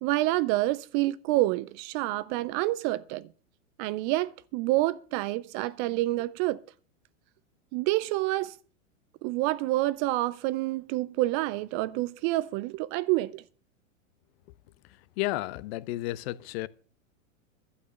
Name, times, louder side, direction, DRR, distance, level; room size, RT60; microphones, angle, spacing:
voice 1, 0.0-3.3 3.8-6.6 7.7-8.6 9.2-13.4, right 18 dB, 35° right, 0.5 m, -28 dB
voice 2, 15.2-16.7, left 17 dB, 50° left, 0.8 m, -32 dB
12.0 x 8.4 x 6.6 m
hypercardioid pair, 100°, 40 cm